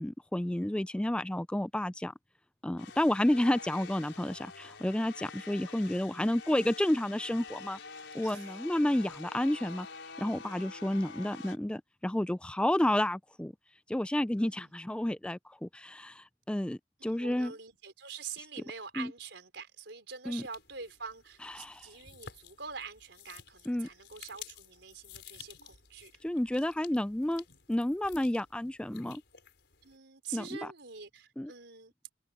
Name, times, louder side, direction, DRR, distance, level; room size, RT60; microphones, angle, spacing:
voice 1, 0.0-2.1 2.6-7.8 8.1-9.9 10.2-13.5 13.9-17.5 19.0-19.1 20.3-20.4 21.4-21.9 23.7-23.9 26.2-29.2 30.3-30.7 31.4-31.5, left 1 dB, 5° left, 0.3 m, -31 dB
sound 1, 2.8-11.6, left 4 dB, 85° left, 5.1 m, -47 dB
voice 2, 8.2-8.6 14.5-14.7 17.0-26.1 28.3-28.4 29.8-31.9, right 5 dB, 70° right, 4.7 m, -45 dB
sound 2, 20.3-30.0, left 8 dB, 65° left, 6.0 m, -54 dB
open air
head